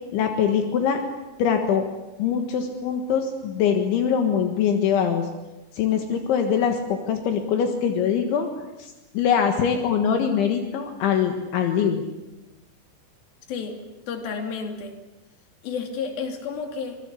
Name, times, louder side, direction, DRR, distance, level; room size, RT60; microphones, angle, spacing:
voice 1, 0.1-1.0 1.4-1.9 2.2-5.3 5.7-8.5 8.8-12.0, left 7 dB, 75° left, 5 dB, 4.0 m, -23 dB
voice 2, 14.1-14.9 15.6-17.0, left 5 dB, 55° left, 4 dB, 4.4 m, -31 dB
25.5 x 21.5 x 8.4 m, 1.0 s
omnidirectional pair, 5.5 m